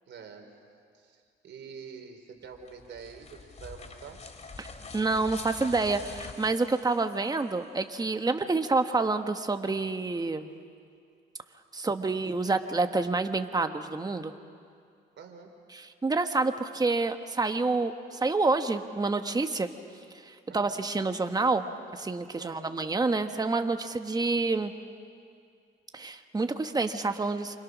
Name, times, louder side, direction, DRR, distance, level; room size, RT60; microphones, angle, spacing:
voice 1, 0.1-0.5 0.9-4.2 8.4-8.5 15.2-15.6 20.5-20.8 22.3-22.7, right 6 dB, 65° right, 4 dB, 3.7 m, -46 dB
sound 1, 2.5-7.5, left 4 dB, 35° left, 2.6 m, -45 dB
voice 2, 4.9-10.5 11.7-14.3 15.7-19.7 20.2-21.7 21.9-24.7 25.9-27.6, right 3 dB, 20° right, 7 dB, 1.3 m, -28 dB
28.5 x 26.0 x 6.2 m, 2.3 s
cardioid pair, 90°, 20 cm